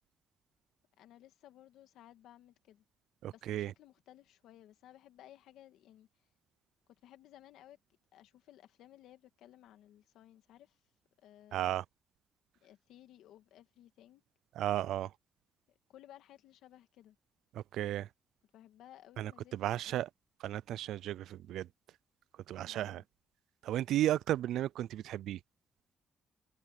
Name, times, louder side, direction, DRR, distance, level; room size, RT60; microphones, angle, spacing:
voice 1, 1.0-2.8 3.3-6.1 6.9-7.8 8.1-10.8 11.2-11.8 12.6-14.2 15.9-17.2 18.5-20.0 22.6-23.0, left 12 dB, 85° left, 2.2 m, -58 dB
voice 2, 3.2-3.7 11.5-11.8 14.5-15.1 17.5-18.1 19.2-20.1 20.4-21.7 22.5-23.0 23.6-25.4, right 13 dB, 80° right, 0.4 m, -34 dB
cardioid pair, 75°, 0 cm